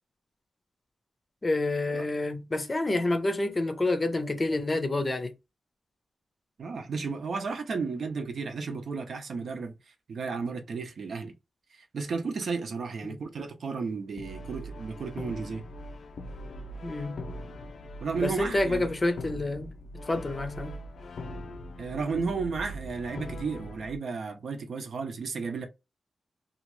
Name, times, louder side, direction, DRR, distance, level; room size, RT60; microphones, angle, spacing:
voice 1, 1.4-5.3 13.0-13.2 16.8-17.2 18.2-19.7 20.1-20.8, left 2 dB, 25° left, 0.6 m, -28 dB
voice 2, 6.6-9.8 10.1-11.3 11.7-15.7 18.0-18.9 21.8-25.7, right 4 dB, 70° right, 0.6 m, -33 dB
Brass instrument, 14.2-24.0, left 1 dB, 75° left, 0.4 m, -41 dB
2.8 x 2.4 x 3.1 m
wide cardioid pair, 140°, 0 cm